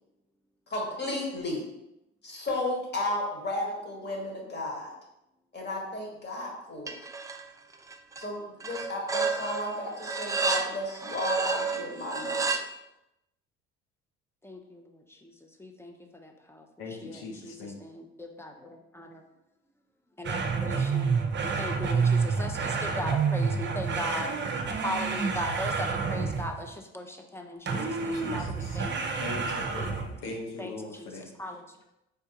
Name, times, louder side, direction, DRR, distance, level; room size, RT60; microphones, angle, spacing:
voice 1, 0.7-1.6 2.2-4.9 5.5-7.0 8.2-12.5, left 1 dB, 30° left, -1 dB, 1.6 m, -33 dB
sound 1, 6.9-7.5 7.7-8.3 8.6-12.6, right 4 dB, 10° right, 0.3 m, -31 dB
voice 2, 14.4-19.2 20.2-21.2 21.4-24.3 24.7-29.0 29.8-31.8, left 1 dB, 10° left, 3 dB, 0.7 m, -39 dB
voice 3, 16.8-17.7 27.7-28.8 29.2-31.3, left 3 dB, 70° left, 2 dB, 0.9 m, -40 dB
sound 2, 20.2-26.7 27.7-30.2, right 5 dB, 35° right, 0.7 m, -29 dB
4.5 x 3.5 x 2.9 m, 0.89 s
hypercardioid pair, 60°, 32 cm